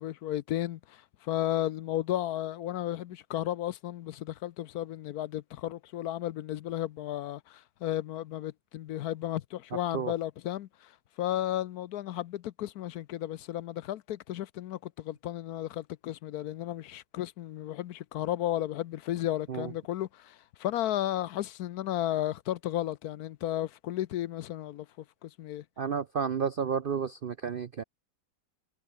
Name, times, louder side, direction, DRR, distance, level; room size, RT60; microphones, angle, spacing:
voice 1, 0.0-10.7 11.2-24.9 25.2-25.6, left 13 dB, 70° left, 1.1 m, -33 dB
voice 2, 25.8-27.8, right 7 dB, 60° right, 0.5 m, -31 dB
omnidirectional pair, 1.8 m